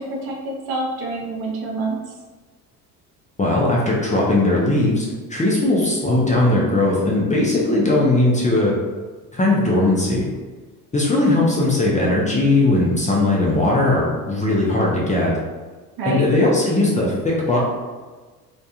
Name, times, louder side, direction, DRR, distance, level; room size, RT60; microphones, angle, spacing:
voice 1, 0.0-2.0 16.0-16.2, right 2 dB, 55° right, -1 dB, 0.7 m, -27 dB
voice 2, 3.4-8.7 9.3-10.3 10.9-15.3 16.1-17.6, left 2 dB, 15° left, -4 dB, 0.6 m, -18 dB
2.3 x 2.1 x 2.8 m, 1.3 s
hypercardioid pair, 65°, 46 cm